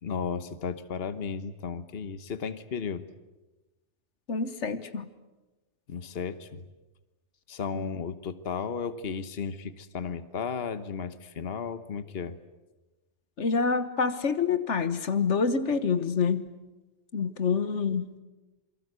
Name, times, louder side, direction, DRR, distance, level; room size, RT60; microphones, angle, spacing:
voice 1, 0.0-3.0 5.9-6.6 7.5-12.4, left 6 dB, 60° left, 12 dB, 1.3 m, -34 dB
voice 2, 4.3-5.1 7.7-7.8 13.4-16.5 17.1-18.1, left 5 dB, 90° left, 11 dB, 1.6 m, -27 dB
28.0 x 23.5 x 8.1 m, 1.1 s
omnidirectional pair, 1.2 m